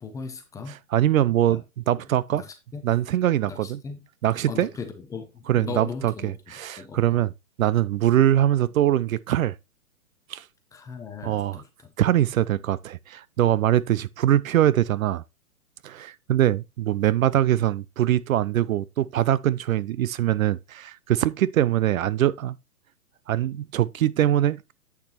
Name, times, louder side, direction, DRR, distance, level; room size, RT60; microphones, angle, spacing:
voice 1, 0.0-0.8 1.5-1.6 2.3-2.8 3.4-4.0 4.5-6.4 6.8-7.2 10.7-11.7, left 5 dB, 5° left, 0.7 m, -38 dB
voice 2, 0.9-2.4 2.8-3.8 4.2-4.7 5.5-7.3 7.6-9.6 10.3-10.4 11.2-11.6 12.0-15.2 15.8-22.6 23.3-24.7, right 12 dB, 65° right, 0.5 m, -23 dB
8.3 x 6.6 x 2.9 m
hypercardioid pair, 130°, 45 cm